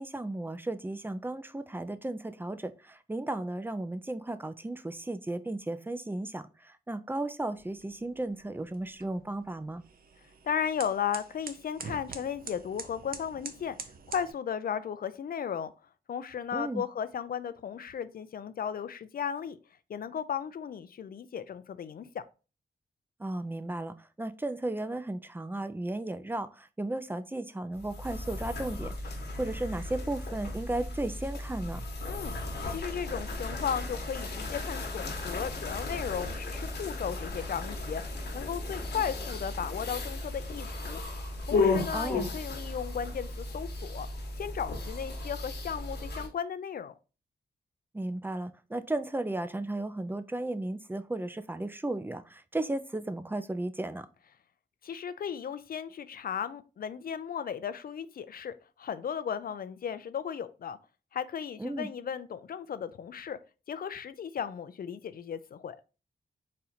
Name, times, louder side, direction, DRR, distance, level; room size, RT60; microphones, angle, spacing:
voice 1, 0.0-9.8 16.5-16.8 23.2-31.8 41.9-42.3 47.9-54.1 61.6-61.9, right 2 dB, 10° right, 0.4 m, -35 dB
sound 1, 7.5-14.3, right 5 dB, 60° right, 0.7 m, -46 dB
voice 2, 10.4-13.8 14.1-15.7 16.1-19.6 19.9-22.2 32.1-32.4 32.7-38.0 38.3-41.0 41.5-44.1 44.4-46.9 54.8-60.8 61.1-63.4 63.7-65.8, left 8 dB, 60° left, 0.4 m, -35 dB
sound 2, 27.7-46.3, left 3 dB, 85° left, 1.2 m, -35 dB
4.2 x 2.5 x 4.2 m
cardioid pair, 75°, 17 cm